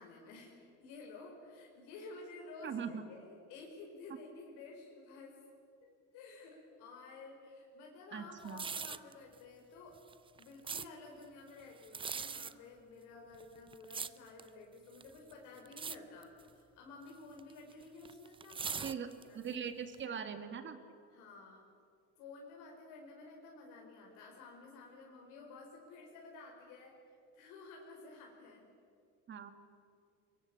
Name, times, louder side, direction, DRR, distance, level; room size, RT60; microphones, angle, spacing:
voice 1, 0.0-5.4 5.8-10.0 10.4-19.0 19.3-19.6 21.1-21.6 22.2-26.9 27.3-28.6, left 3 dB, 80° left, 0 dB, 5.0 m, -52 dB
voice 2, 2.6-3.1 8.1-8.7 18.8-19.1 19.3-20.8 29.3-29.5, right 7 dB, 35° right, 8 dB, 1.9 m, -41 dB
sound 1, 8.4-9.1 10.0-10.9 11.8-12.5 13.3-14.5 15.0-15.3 15.7-16.0 16.2-16.5 17.4-19.5 19.9-20.0, right 6 dB, 15° right, 0.5 m, -41 dB
23.0 x 22.5 x 8.8 m, 2.3 s
cardioid pair, 125°, 32 cm